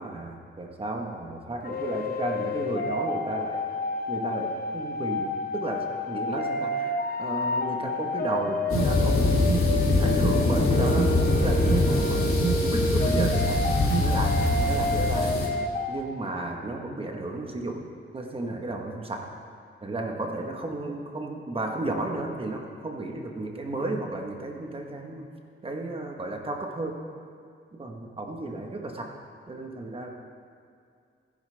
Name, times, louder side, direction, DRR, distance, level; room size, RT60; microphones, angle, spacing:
voice 1, 0.0-3.6 4.1-11.1 11.4-13.6 14.0-15.3 15.9-17.8 18.1-19.3 19.8-25.3 25.6-27.0 27.7-29.1 29.5-30.1, right 2 dB, 25° right, 2 dB, 1.2 m, -33 dB
sound 1, 1.6-16.0, left 2 dB, 45° left, 0.8 m, -30 dB
Alarm, 8.4-14.3, right 8 dB, 90° right, 0.6 m, -32 dB
sound 2, 8.7-15.5, left 2 dB, 90° left, 2.6 m, -24 dB
17.5 x 10.5 x 3.4 m, 2.3 s
wide cardioid pair, 170°, 21 cm